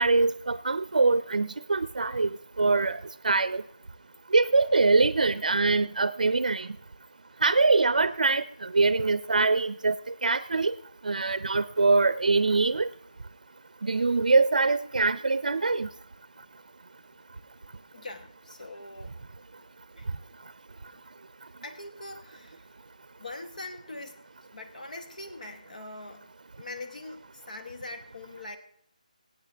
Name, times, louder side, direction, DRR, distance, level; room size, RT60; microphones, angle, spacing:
voice 1, 0.0-3.6 4.3-6.7 7.4-9.9 10.2-10.7 11.0-12.9 13.8-15.9, right 3 dB, 75° right, 15 dB, 0.5 m, -23 dB
voice 2, 17.9-19.1 20.0-20.1 21.6-22.7 23.2-24.2 24.5-26.3 26.6-28.6, left 2 dB, 70° left, 6 dB, 1.1 m, -42 dB
22.5 x 8.9 x 3.4 m, 0.70 s
hypercardioid pair, 180°, 4 cm